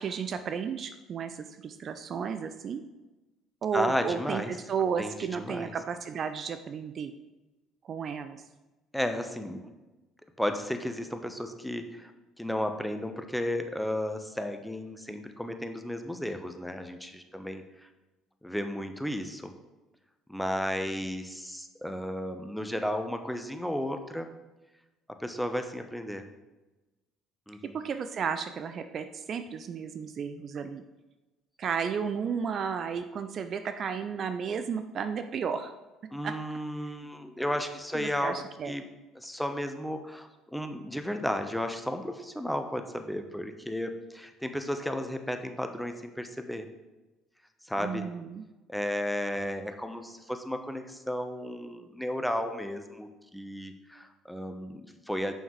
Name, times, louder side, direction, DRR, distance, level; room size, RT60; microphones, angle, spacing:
voice 1, 0.0-2.8 3.6-7.1 7.8-8.4 27.6-30.8 31.6-35.7 36.2-36.3 37.9-38.7 47.8-48.4, right 6 dB, 45° right, 9 dB, 0.4 m, -33 dB
voice 2, 3.7-4.5 5.0-5.7 8.9-9.6 10.4-12.1 12.4-17.6 18.4-19.5 20.3-24.3 25.1-26.3 27.5-27.8 36.1-38.8 39.2-46.7 47.6-48.1 48.7-55.3, equal, 5° left, 7 dB, 0.7 m, -33 dB
7.1 x 5.5 x 3.1 m, 1.1 s
hypercardioid pair, 55°, 0 cm